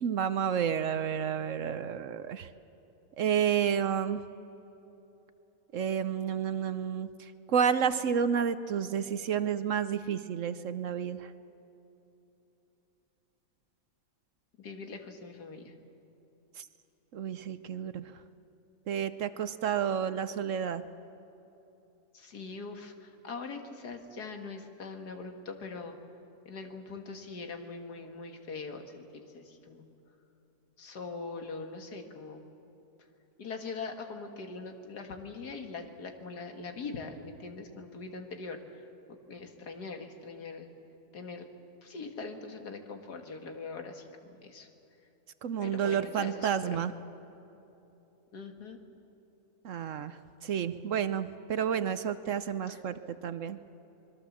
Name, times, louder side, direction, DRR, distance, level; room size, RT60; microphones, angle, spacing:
voice 1, 0.0-2.5 3.2-4.2 5.7-11.3 16.6-16.7 17.1-18.1 18.9-20.8 45.4-46.9 49.6-53.6, right 8 dB, 60° right, 12 dB, 1.0 m, -30 dB
voice 2, 14.6-15.7 22.1-25.9 26.5-29.0 29.3-29.9 30.8-32.5 33.4-38.8 39.1-40.7 41.1-41.5 41.8-44.7 45.6-46.9 48.3-48.8 52.7-52.8, left 4 dB, 85° left, 5 dB, 2.3 m, -42 dB
26.0 x 21.0 x 7.3 m, 3.0 s
omnidirectional pair, 1.7 m